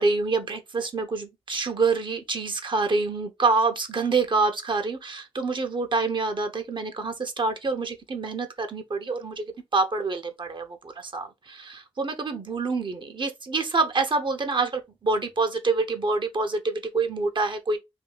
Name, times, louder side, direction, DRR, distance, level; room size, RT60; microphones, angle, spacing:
voice 1, 0.0-9.4 9.7-17.8, right 3 dB, 45° right, 0.8 m, -26 dB
2.7 x 2.6 x 3.9 m
supercardioid pair, 45°, 11 cm